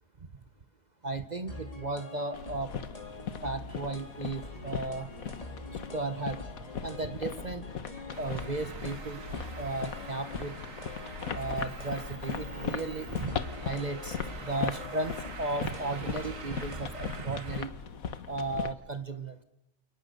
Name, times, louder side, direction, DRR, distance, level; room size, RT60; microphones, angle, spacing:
voice 1, 1.0-2.7 3.4-5.1 5.9-6.4 6.8-7.6 8.2-9.2 9.6-10.6 11.3-17.7 18.3-19.4, right 2 dB, 35° right, 10 dB, 1.2 m, -35 dB
sound 1, 1.5-17.2, left 1 dB, 25° left, 3.8 m, -45 dB
sound 2, 2.3-18.7, left 7 dB, 80° left, 1.7 m, -39 dB
Traffic noise roadway noise, 8.1-17.6, right 4 dB, 70° right, 2.2 m, -45 dB
29.0 x 29.0 x 6.7 m, 0.91 s
omnidirectional pair, 1.4 m